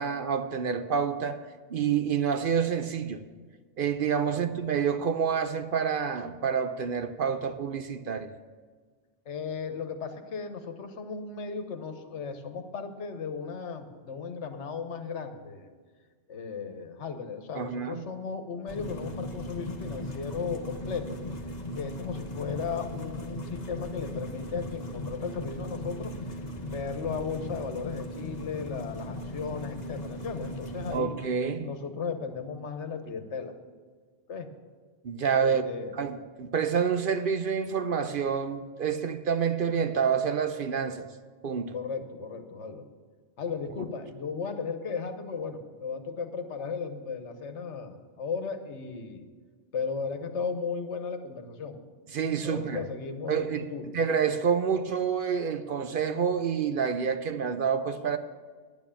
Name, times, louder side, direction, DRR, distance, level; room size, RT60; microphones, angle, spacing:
voice 1, 0.0-1.4 1.7-3.2 3.8-8.3 17.5-18.0 30.9-31.7 35.0-35.6 36.0-41.1 41.4-41.7 52.1-52.9 53.3-53.7 53.9-58.2, right 7 dB, 55° right, 0.7 m, -28 dB
voice 2, 9.3-15.7 16.3-21.2 21.7-26.1 26.6-31.1 31.6-33.5 34.3-34.5 35.4-35.9 41.7-42.8 43.4-49.2 49.7-51.8 52.4-53.9, left 5 dB, 80° left, 1.3 m, -36 dB
sound 1, 18.7-31.0, left 1 dB, 40° left, 1.1 m, -38 dB
10.5 x 8.9 x 7.0 m
omnidirectional pair, 1.2 m